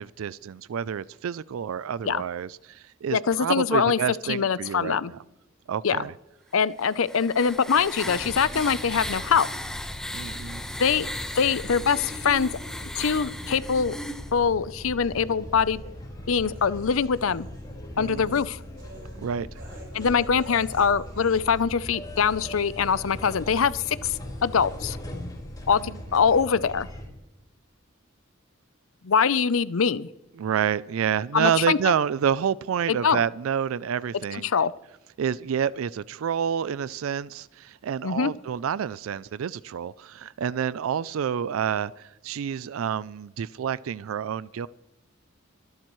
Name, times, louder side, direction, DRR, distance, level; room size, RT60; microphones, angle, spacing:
voice 1, 0.0-5.2 5.7-6.1 10.1-10.6 18.0-18.2 19.2-19.5 30.4-34.5 35.2-44.7, right 8 dB, 90° right, 0.4 m, -28 dB
voice 2, 3.1-4.0 4.3-5.1 5.8-6.1 6.5-9.5 10.8-11.1 11.4-12.5 12.9-13.9 14.3-15.8 16.3-17.5 18.0-18.6 19.9-25.0 25.7-26.9 29.0-30.1 31.3-31.8 32.9-33.2 34.3-34.7 38.0-38.3, left 6 dB, 85° left, 0.6 m, -23 dB
sound 1, 6.8-14.3, left 1 dB, 5° left, 1.1 m, -36 dB
sound 2, 8.0-27.1, left 1 dB, 20° left, 4.5 m, -40 dB
sound 3, 15.2-21.6, right 2 dB, 60° right, 5.6 m, -50 dB
25.5 x 12.0 x 3.1 m
head